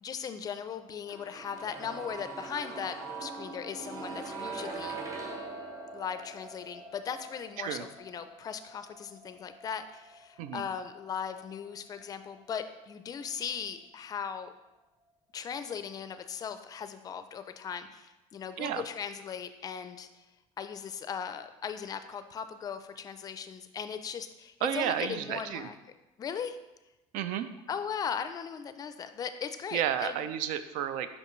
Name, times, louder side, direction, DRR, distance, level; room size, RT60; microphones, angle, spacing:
voice 1, 0.0-5.0 5.9-14.5 15.3-20.2 20.6-25.8 26.2-26.6 27.7-30.2, left 7 dB, 30° left, 10 dB, 0.4 m, -38 dB
sound 1, 1.1-12.9 13.2-13.3, right 3 dB, 25° right, 0.9 m, -43 dB
voice 2, 24.6-25.7 27.1-27.5 29.7-31.2, right 10 dB, 80° right, 11 dB, 0.4 m, -32 dB
5.7 x 5.3 x 3.1 m, 1.0 s
cardioid pair, 135°, 13 cm